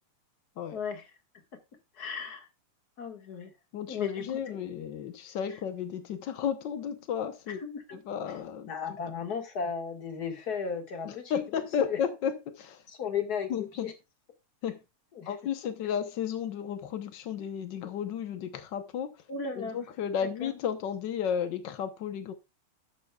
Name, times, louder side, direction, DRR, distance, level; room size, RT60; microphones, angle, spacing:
voice 1, 0.7-1.1 1.5-1.6 2.0-2.5 3.0-3.5 3.9-4.6 5.5-5.6 7.5-7.8 8.3-8.4 8.7-11.6 11.9-12.0 12.9-13.9 15.1-15.3 19.3-19.8 20.2-20.5, left 6 dB, 35° left, 1.8 m, -35 dB
voice 2, 3.7-7.6 7.9-8.7 11.0-12.8 13.5-13.9 14.6-14.8 15.3-19.1 19.7-22.3, left 8 dB, 85° left, 0.9 m, -33 dB
12.0 x 11.0 x 2.3 m
omnidirectional pair, 3.4 m